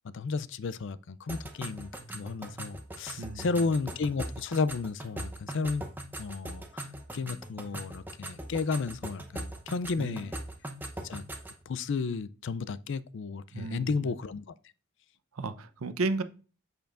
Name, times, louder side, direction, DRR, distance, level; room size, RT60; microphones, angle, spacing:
voice 1, 0.0-5.9 6.2-10.3 11.0-11.2 11.7-14.4, left 4 dB, 55° left, 0.4 m, -33 dB
sound 1, 1.3-11.6, right 1 dB, 10° right, 0.7 m, -41 dB
voice 2, 3.2-3.7 10.0-10.3 13.5-14.2 15.3-16.2, right 3 dB, 75° right, 0.7 m, -34 dB
7.8 x 6.8 x 2.5 m
head